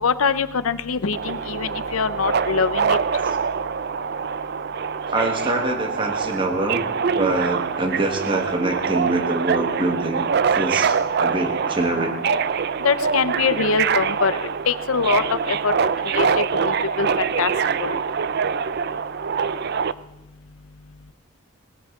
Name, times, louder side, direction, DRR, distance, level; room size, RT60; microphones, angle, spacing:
voice 1, 0.0-3.0 12.8-15.7 16.0-17.5 17.8-18.0, left 5 dB, 80° left, 13 dB, 0.7 m, -23 dB
Subway metro underground, 1.1-19.9, right 6 dB, 50° right, 0.4 m, -24 dB
voice 2, 5.1-6.8 7.2-10.3 10.5-12.1, right 1 dB, 25° right, 3 dB, 1.5 m, -25 dB
20.0 x 13.5 x 3.7 m, 0.95 s
head